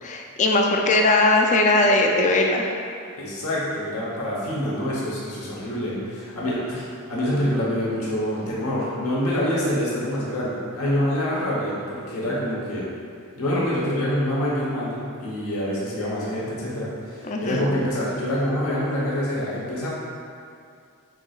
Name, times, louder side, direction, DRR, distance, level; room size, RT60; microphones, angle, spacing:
voice 1, 0.0-2.7 17.3-17.6, left 2 dB, 35° left, 2 dB, 0.4 m, -19 dB
voice 2, 3.2-12.8 13.4-19.9, equal, 75° left, -6 dB, 1.0 m, -26 dB
4.7 x 3.8 x 2.4 m, 2.3 s
head